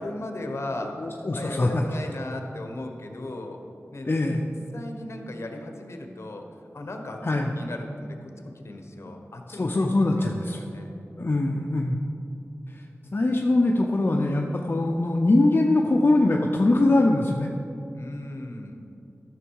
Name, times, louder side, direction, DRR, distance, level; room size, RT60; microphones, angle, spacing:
voice 1, 0.0-0.9 1.3-3.6 3.9-4.4 4.7-6.4 6.7-10.9 11.5-11.7 17.9-18.8, left 2 dB, 60° left, 3 dB, 1.2 m, -37 dB
voice 2, 1.0-1.8 4.0-4.4 7.2-7.5 9.6-10.6 11.2-12.0 12.7-12.8 13.1-17.5, left 2 dB, 45° left, 0 dB, 0.6 m, -22 dB
13.5 x 6.3 x 4.7 m, 2.6 s
wide cardioid pair, 80°, 5 cm